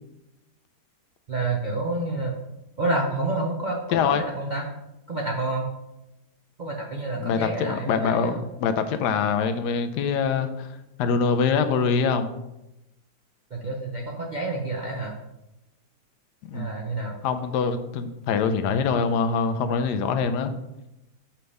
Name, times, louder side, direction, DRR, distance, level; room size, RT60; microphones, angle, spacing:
voice 1, 1.3-2.4 2.8-4.0 4.4-4.7 5.1-5.7 6.6-8.5 13.5-15.1 16.5-17.2, right 2 dB, 55° right, -1 dB, 0.5 m, -28 dB
voice 2, 3.9-4.2 7.2-10.7 11.0-12.3 16.5-16.7 17.2-20.5, left 5 dB, 90° left, 9 dB, 1.2 m, -24 dB
5.8 x 3.3 x 5.3 m, 0.91 s
omnidirectional pair, 1.7 m